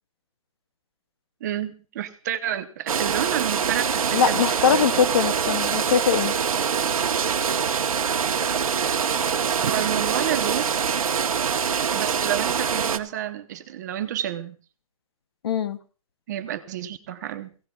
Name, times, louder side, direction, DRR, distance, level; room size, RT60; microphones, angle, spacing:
voice 1, 1.4-4.4 4.7-4.9 9.6-10.8 11.9-14.6 16.3-17.5, right 11 dB, 30° right, 0.9 m, -30 dB
sound 1, 2.9-13.0, right 7 dB, 70° right, 1.0 m, -24 dB
voice 2, 4.1-6.3 15.4-15.8, left 7 dB, 45° left, 0.8 m, -22 dB
21.5 x 17.0 x 2.3 m
hypercardioid pair, 165°, 18 cm